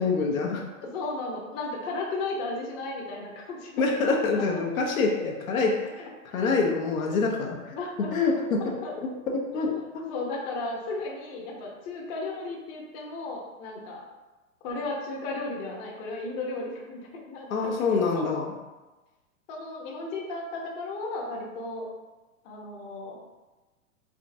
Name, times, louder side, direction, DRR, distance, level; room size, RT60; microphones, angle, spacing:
voice 1, 0.0-0.6 3.8-6.1 6.3-7.6 8.1-8.6 9.0-10.1 17.5-18.5, left 4 dB, 80° left, -1 dB, 0.9 m, -26 dB
voice 2, 0.8-4.6 7.7-8.3 8.6-8.9 9.5-14.0 14.6-18.3 19.5-21.9 22.4-23.2, left 2 dB, 35° left, -2 dB, 0.8 m, -35 dB
3.7 x 3.4 x 2.6 m, 1.2 s
hypercardioid pair, 120°, 41 cm